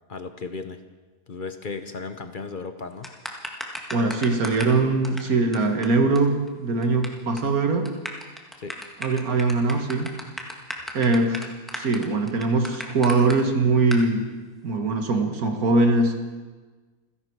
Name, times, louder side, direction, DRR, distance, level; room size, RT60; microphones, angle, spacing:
voice 1, 0.1-0.8 1.3-3.1 8.6-8.8, left 4 dB, 45° left, 9 dB, 0.7 m, -35 dB
sound 1, 3.0-4.8 5.0-5.2 5.5-5.6 5.8-5.9 6.2-6.3 6.5-7.1 7.4-7.5 7.9-13.4 13.9-14.0, equal, ahead, 1.5 m, -34 dB
voice 2, 3.9-7.9 9.0-10.1 10.9-11.5 11.7-14.3 14.6-16.1, right 3 dB, 65° right, 5 dB, 2.0 m, -22 dB
28.0 x 11.0 x 4.7 m, 1.3 s
omnidirectional pair, 1.7 m